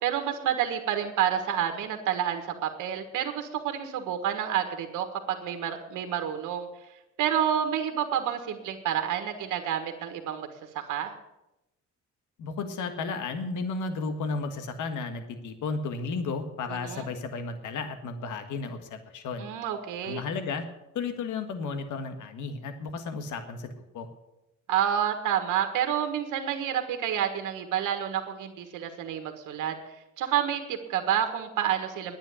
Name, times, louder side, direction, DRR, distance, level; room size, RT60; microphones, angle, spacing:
voice 1, 0.0-6.7 7.2-10.5 10.7-11.1 16.7-17.1 19.4-20.2 24.7-29.7 30.2-32.2, right 9 dB, 85° right, 6 dB, 1.6 m, -29 dB
voice 2, 12.4-19.5 20.0-20.6 20.9-24.1, left 4 dB, 80° left, 8 dB, 1.7 m, -33 dB
10.0 x 9.2 x 9.8 m, 0.92 s
cardioid pair, 90°, 30 cm